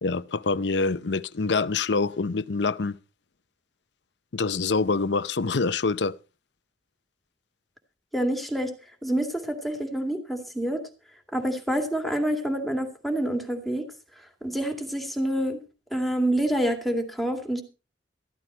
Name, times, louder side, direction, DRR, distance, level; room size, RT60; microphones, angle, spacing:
voice 1, 0.0-3.0 4.3-6.1, left 4 dB, 70° left, 0.7 m, -25 dB
voice 2, 8.1-8.7 9.0-10.9 11.3-13.9 14.4-15.6 15.9-17.6, right 1 dB, ahead, 2.3 m, -27 dB
14.0 x 13.0 x 4.4 m
head